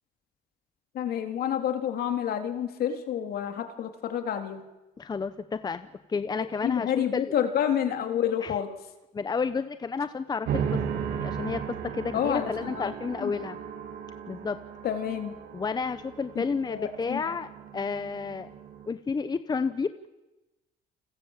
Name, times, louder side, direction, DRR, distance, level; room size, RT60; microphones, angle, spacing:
voice 1, 0.9-4.6 6.3-8.7 12.1-12.9 13.2-13.3 14.8-15.4 16.4-16.5 16.7-17.4, left 9 dB, 65° left, 6 dB, 3.4 m, -29 dB
voice 2, 5.0-7.3 8.4-8.5 9.1-10.6 10.9-13.6 14.3-14.6 15.5-17.5 17.7-18.5 18.9-20.1, left 5 dB, 25° left, 11 dB, 0.9 m, -31 dB
sound 1, 10.4-18.9, right 8 dB, 70° right, 3.1 m, -36 dB
29.5 x 21.5 x 7.4 m, 1.0 s
cardioid pair, 110°, 17 cm